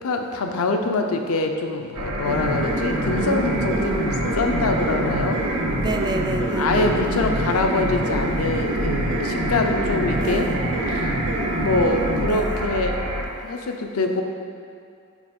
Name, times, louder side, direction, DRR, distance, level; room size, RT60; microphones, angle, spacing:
voice 1, 0.0-5.4 6.6-10.5 10.9-11.0 11.5-13.0 13.4-14.2, left 3 dB, 75° left, 5 dB, 0.5 m, -24 dB
sound 1, 1.9-13.2, right 1 dB, 85° right, 0.8 m, -28 dB
sound 2, 2.2-12.3, right 1 dB, 55° right, 0.6 m, -27 dB
voice 2, 3.2-4.4 5.4-7.2 10.1-10.6 12.2-12.6, right 2 dB, 20° right, 5 dB, 0.3 m, -31 dB
7.3 x 3.1 x 5.2 m, 2.4 s
head